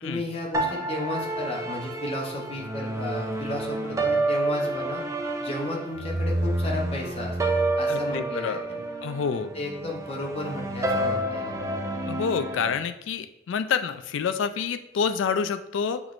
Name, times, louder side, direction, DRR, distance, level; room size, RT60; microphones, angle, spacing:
voice 1, 0.0-5.0 5.4-8.9 9.3-11.8, left 1 dB, 30° left, -1 dB, 0.7 m, -34 dB
sound 1, 0.5-12.8, right 2 dB, 15° right, 0.3 m, -29 dB
voice 2, 7.9-8.6 9.0-9.5 12.1-16.0, left 6 dB, 80° left, 9 dB, 0.3 m, -28 dB
5.9 x 3.0 x 2.5 m, 0.82 s
head